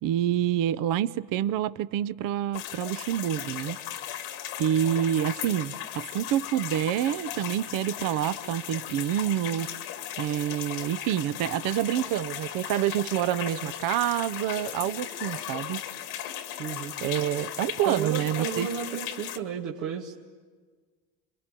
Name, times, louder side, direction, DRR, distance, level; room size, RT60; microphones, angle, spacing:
voice 1, 0.0-3.8 4.6-9.7 10.2-15.8 17.0-18.7, right 11 dB, 60° right, 0.8 m, -27 dB
sound 1, 2.5-19.4, left 11 dB, 85° left, 2.1 m, -37 dB
voice 2, 16.6-16.9 17.9-20.2, right 8 dB, 80° right, 2.0 m, -33 dB
28.0 x 23.0 x 9.1 m
supercardioid pair, 95°, 36 cm